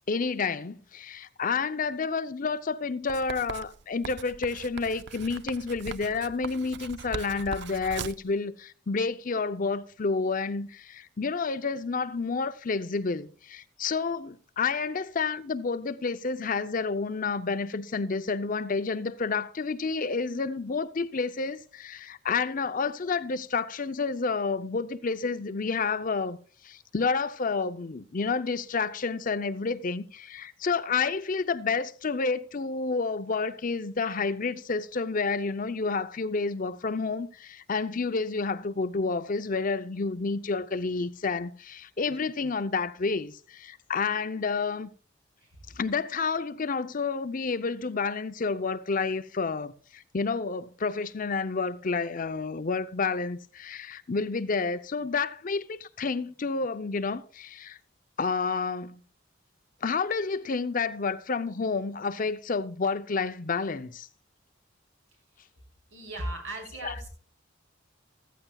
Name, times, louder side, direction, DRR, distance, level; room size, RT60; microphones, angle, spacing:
voice 1, 0.1-26.4 26.6-44.9 45.7-57.8 58.2-59.0 59.8-64.1 66.8-66.9, left 4 dB, 45° left, 0.6 m, -30 dB
Writing, 3.1-8.3, right 6 dB, 60° right, 0.4 m, -40 dB
voice 2, 65.9-67.1, right 1 dB, 75° right, 4.3 m, -37 dB
14.5 x 14.0 x 2.3 m
head